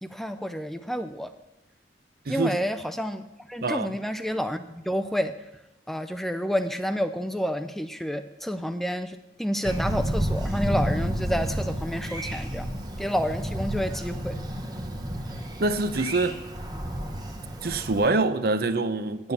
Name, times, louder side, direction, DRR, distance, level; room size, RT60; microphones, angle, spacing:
voice 1, 0.0-1.3 2.3-5.3 5.9-12.7 13.0-14.4, equal, ahead, 0.4 m, -29 dB
voice 2, 2.3-2.6 3.6-4.0 15.6-16.3 17.6-19.3, right 3 dB, 60° right, 0.7 m, -25 dB
Thunder, 9.6-18.1, right 1 dB, 25° right, 0.9 m, -31 dB
9.5 x 8.9 x 7.0 m
head